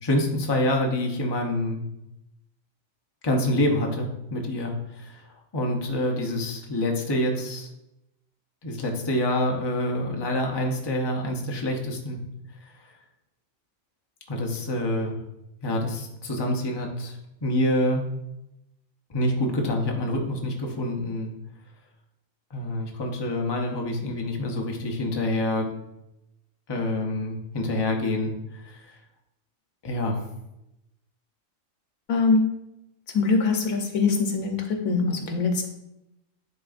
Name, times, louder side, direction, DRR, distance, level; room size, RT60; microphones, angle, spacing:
voice 1, 0.0-1.8 3.2-5.2 5.5-7.7 8.6-12.2 12.6-12.7 14.3-15.2 15.6-18.1 19.1-21.3 22.5-25.7 26.7-28.9 29.8-30.2, left 1 dB, 25° left, 1 dB, 0.7 m, -27 dB
voice 2, 32.1-32.4 33.1-35.7, left 4 dB, 85° left, 3 dB, 1.3 m, -23 dB
10.5 x 3.7 x 2.5 m, 0.88 s
omnidirectional pair, 1.4 m